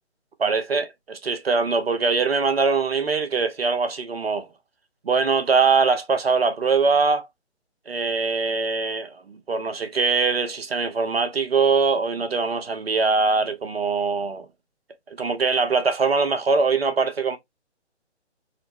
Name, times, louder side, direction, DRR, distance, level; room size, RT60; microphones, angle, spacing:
voice 1, 0.4-4.5 5.0-7.3 7.9-14.5 15.1-17.4, right 4 dB, 60° right, 0.9 m, -22 dB
3.9 x 2.1 x 3.3 m
figure-of-eight pair, 140°, 34 cm